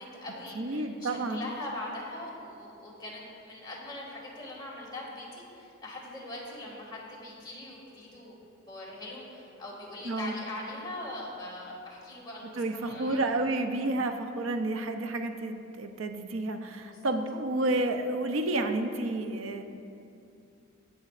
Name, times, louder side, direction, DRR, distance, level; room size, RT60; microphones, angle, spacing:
voice 1, 0.0-13.2 16.9-17.0, left 1 dB, 20° left, -4 dB, 1.9 m, -42 dB
voice 2, 0.5-1.5 10.0-10.3 12.6-19.6, right 2 dB, 75° right, 6 dB, 0.6 m, -30 dB
16.0 x 6.3 x 2.4 m, 2.6 s
head